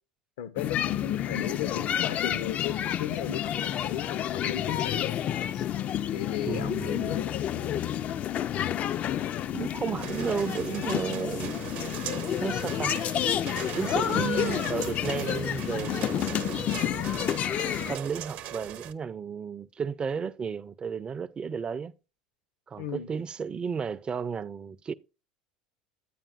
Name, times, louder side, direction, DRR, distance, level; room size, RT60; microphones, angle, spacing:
voice 1, 0.4-5.2 5.5-5.6 6.1-7.8 22.8-23.1, left 10 dB, 75° left, 0.7 m, -36 dB
sound 1, 0.6-18.0, left 10 dB, 40° left, 0.3 m, -30 dB
voice 2, 6.5-7.3 9.5-11.6 12.4-13.0 13.7-17.1 17.9-21.9 22.7-24.9, right 6 dB, 25° right, 0.4 m, -33 dB
sound 2, 10.0-18.9, right 11 dB, 55° right, 0.7 m, -39 dB
10.0 x 8.7 x 2.4 m
hypercardioid pair, 80°, 4 cm